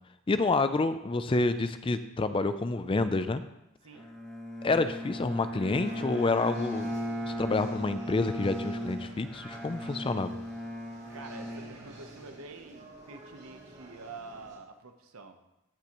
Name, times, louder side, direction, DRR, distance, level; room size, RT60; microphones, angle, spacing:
voice 1, 0.3-3.4 4.6-6.9 7.3-10.3, left 3 dB, 25° left, 11 dB, 0.4 m, -28 dB
Bowed string instrument, 3.9-12.4, equal, 5° left, 1.6 m, -37 dB
sound 1, 5.8-14.6, right 2 dB, 55° right, 2.7 m, -51 dB
voice 2, 11.1-15.4, right 3 dB, 80° right, 7 dB, 0.9 m, -47 dB
16.0 x 5.9 x 3.0 m, 0.89 s
head